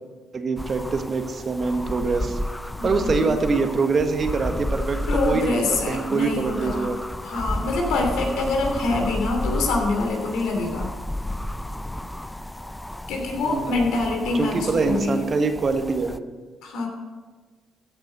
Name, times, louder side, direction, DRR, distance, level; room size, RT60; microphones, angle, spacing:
voice 1, 0.3-2.4 2.8-7.0 13.4-13.8 14.3-16.1, right 4 dB, 45° right, 6 dB, 1.4 m, -24 dB
sound 1, 0.6-16.2, left 1 dB, 10° left, 0.5 m, -32 dB
voice 2, 2.8-3.4 5.1-6.9 7.2-10.9 13.1-15.2 16.6-16.9, left 3 dB, 80° left, 1 dB, 2.9 m, -25 dB
15.0 x 6.2 x 6.6 m, 1.4 s
supercardioid pair, 65°, 0 cm